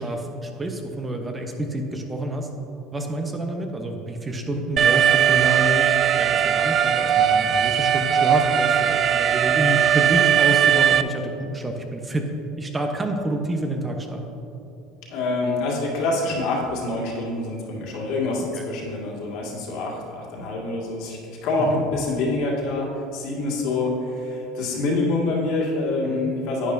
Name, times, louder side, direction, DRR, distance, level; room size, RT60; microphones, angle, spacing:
voice 1, 0.0-2.5 2.9-12.3 12.6-14.2 18.5-18.6 21.6-21.8 26.0-26.3, right 2 dB, 20° right, 4 dB, 0.9 m, -28 dB
Alarm, 4.8-11.0, right 9 dB, 40° right, 0.3 m, -19 dB
voice 2, 15.1-26.7, left 2 dB, 65° left, -2 dB, 2.0 m, -26 dB
10.0 x 9.0 x 2.7 m, 2.8 s
hypercardioid pair, 90°, 0 cm